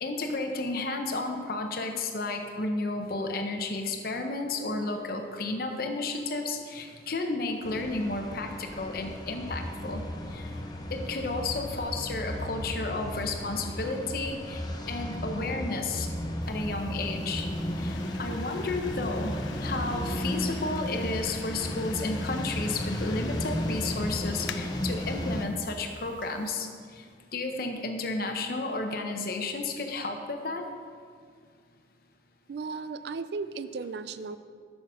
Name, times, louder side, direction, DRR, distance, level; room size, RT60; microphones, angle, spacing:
voice 1, 0.0-10.0 10.3-10.6 10.9-16.1 16.5-17.5 17.8-30.7, left 3 dB, 50° left, 4 dB, 0.8 m, -32 dB
sound 1, 7.6-25.4, left 1 dB, 20° left, 0.6 m, -34 dB
sound 2, 16.4-26.5, left 8 dB, 80° left, 0.4 m, -47 dB
voice 2, 32.5-34.4, right 4 dB, 65° right, 13 dB, 0.3 m, -35 dB
6.7 x 5.8 x 6.2 m, 2.1 s
head